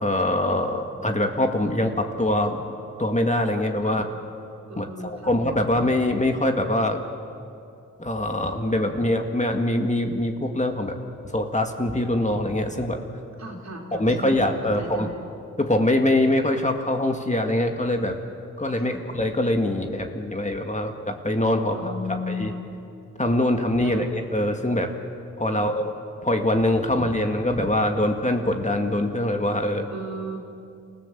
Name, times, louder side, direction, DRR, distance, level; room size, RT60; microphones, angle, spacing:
voice 1, 0.0-2.6 3.0-4.0 4.8-7.0 8.0-10.9 11.2-13.0 13.9-15.1 15.6-18.2 18.6-22.5 23.2-24.9 25.4-25.9 26.2-29.8, left 1 dB, 20° left, 4 dB, 2.1 m, -23 dB
voice 2, 4.7-5.4 13.4-15.3 18.8-19.0 21.7-22.7 23.8-24.1 25.5-25.8 29.9-30.4, left 1 dB, 55° right, 0 dB, 4.0 m, -35 dB
28.5 x 15.5 x 7.6 m, 2.5 s
cardioid pair, 50°, 32 cm